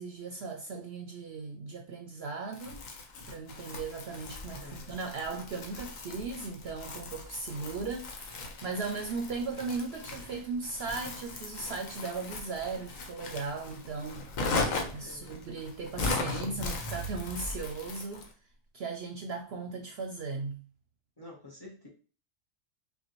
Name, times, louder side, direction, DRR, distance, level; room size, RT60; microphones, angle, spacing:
voice 1, 0.0-2.8 3.3-14.2 14.9-18.3 18.7-20.6, right 4 dB, 60° right, 0.7 m, -37 dB
Crumpling crinkling, 2.5-18.3, left 3 dB, 85° left, 1.2 m, -38 dB
Crackle, 4.3-17.9, left 1 dB, 55° left, 1.3 m, -47 dB
voice 2, 4.6-5.0 15.0-15.3 21.2-21.9, left 2 dB, 20° left, 0.9 m, -49 dB
5.4 x 2.1 x 3.0 m
omnidirectional pair, 1.4 m